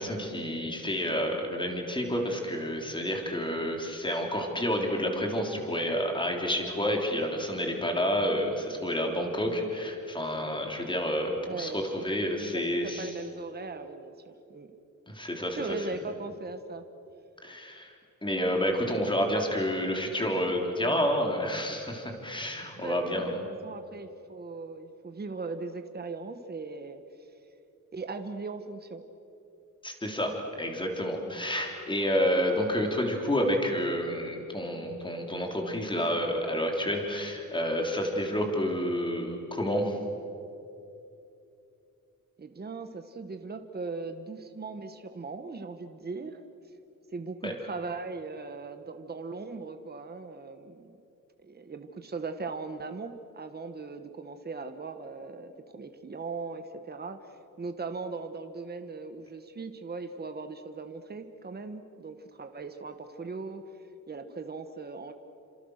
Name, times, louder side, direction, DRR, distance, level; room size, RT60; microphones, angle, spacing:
voice 1, 0.0-13.1 15.1-15.8 17.4-17.9 18.2-23.3 29.8-30.3 30.6-40.0 47.4-47.6, equal, 15° left, 2 dB, 3.6 m, -29 dB
voice 2, 11.4-11.9 12.5-14.7 15.1-15.3 15.6-16.8 22.6-27.3 27.9-29.0 42.4-46.4 47.1-51.0 51.4-63.6 64.1-65.1, right 4 dB, 30° right, 7 dB, 1.3 m, -39 dB
29.5 x 26.5 x 6.5 m, 2.7 s
wide cardioid pair, 135°, 32 cm